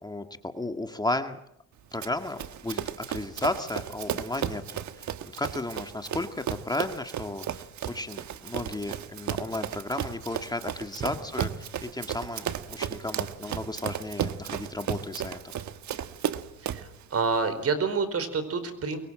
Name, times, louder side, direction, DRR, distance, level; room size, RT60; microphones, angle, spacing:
voice 1, 0.0-1.4 1.9-15.5, left 2 dB, 15° left, 7 dB, 1.8 m, -34 dB
Run, 2.0-16.9, right 10 dB, 70° right, 1.4 m, -34 dB
voice 2, 16.6-19.0, right 4 dB, 50° right, 11 dB, 4.7 m, -28 dB
23.5 x 23.0 x 7.7 m, 0.76 s
cardioid pair, 90°, 30 cm